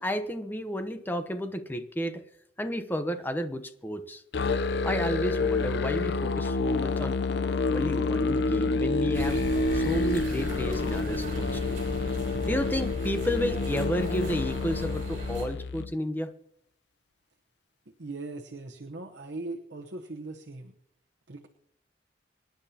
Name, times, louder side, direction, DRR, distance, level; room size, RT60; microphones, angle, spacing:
voice 1, 0.0-2.2 2.6-4.2 4.8-7.2 7.7-9.4 9.7-11.8 12.5-16.3, equal, 10° left, 8 dB, 0.9 m, -31 dB
Musical instrument, 4.3-15.9, left 3 dB, 65° left, 0.6 m, -28 dB
sound 1, 9.1-15.5, right 1 dB, 50° right, 4.2 m, -38 dB
voice 2, 17.9-20.7 21.3-21.5, right 2 dB, 70° right, 1 dB, 1.0 m, -40 dB
25.5 x 10.5 x 2.9 m, 0.77 s
head